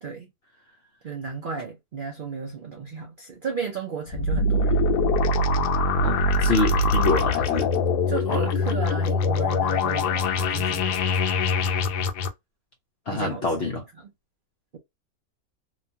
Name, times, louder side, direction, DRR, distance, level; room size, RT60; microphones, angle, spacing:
voice 1, 1.0-4.8 8.1-11.0 13.1-13.7 14.0-14.1, right 5 dB, 80° right, 0.4 m, -34 dB
sound 1, 4.1-12.3, left 3 dB, 85° left, 1.2 m, -23 dB
voice 2, 6.0-7.7 8.3-8.5 13.1-13.8, left 3 dB, 60° left, 0.7 m, -26 dB
3.0 x 2.3 x 2.7 m
omnidirectional pair, 1.7 m